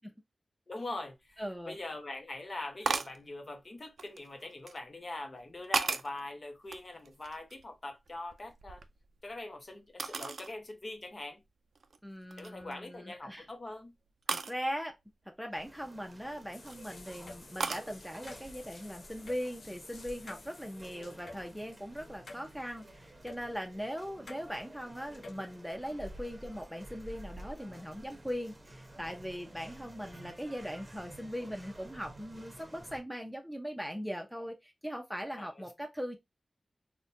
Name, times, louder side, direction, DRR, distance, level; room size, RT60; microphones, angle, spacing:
voice 1, 0.7-8.8 9.2-11.4 12.4-13.9 20.9-21.2 35.4-35.6, left 2 dB, 45° left, 0.7 m, -43 dB
voice 2, 1.4-1.8 12.0-13.5 14.3-15.0 15.3-36.2, equal, ahead, 0.6 m, -40 dB
sound 1, 1.4-1.5 2.8-3.2 4.0-4.8 5.4-6.2 6.7-7.7 8.1-9.3 10.0-10.5 11.0-11.1 11.7-12.0 12.3-12.7 14.3-14.6 16.3-16.8 17.6-17.9, right 4 dB, 85° right, 0.3 m, -35 dB
sound 2, 15.5-33.0, right 1 dB, 30° right, 0.8 m, -52 dB
sound 3, 16.5-22.8 23.3-23.4 24.3-24.4 25.1-25.5, left 3 dB, 80° left, 0.4 m, -51 dB
4.0 x 2.2 x 2.7 m
wide cardioid pair, 85°, 0 cm